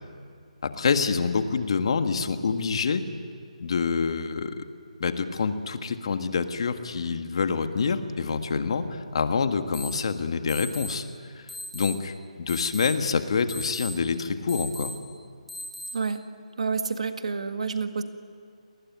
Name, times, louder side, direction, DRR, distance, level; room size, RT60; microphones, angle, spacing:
voice 1, 0.6-3.1 3.6-4.7 5.0-11.1 11.3-14.9, left 5 dB, 45° left, 8 dB, 1.7 m, -27 dB
sound 1, 9.7-9.9 10.5-10.9 11.5-11.9 12.5-12.9 13.5-13.9 14.5-14.9 15.5-15.9, left 1 dB, ahead, 3.7 m, -38 dB
voice 2, 16.6-18.0, right 5 dB, 60° right, 8 dB, 1.9 m, -29 dB
28.0 x 20.0 x 9.6 m, 2.1 s
hypercardioid pair, 170°, 4 cm